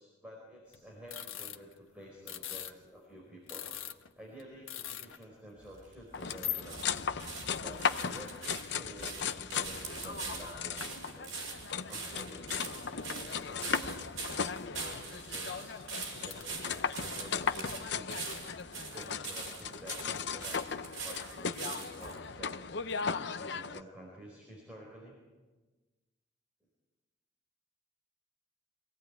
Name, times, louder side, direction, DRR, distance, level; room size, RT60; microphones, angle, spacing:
voice 1, 0.0-3.7 4.2-7.0 7.6-11.5 11.9-12.6 12.9-14.0 14.8-15.8 16.2-18.3 18.7-20.0 20.3-22.5 23.1-25.2, equal, 5° right, -3 dB, 4.5 m, -51 dB
sound 1, 0.7-2.9 3.2-3.3 3.5-5.2 5.5-5.6 6.3-6.6 7.2-7.3 7.6-8.5 8.9-9.0 9.6-9.8 10.1-10.2 10.8-11.3 11.8-12.2 12.6-14.6 15.3-16.4, left 11 dB, 80° left, 1.3 m, -42 dB
sound 2, 5.6-22.2 22.9-23.0, right 4 dB, 70° right, 6.5 m, -43 dB
sound 3, 6.1-23.8, left 6 dB, 55° left, 0.7 m, -37 dB
24.5 x 17.5 x 8.9 m, 1.2 s
head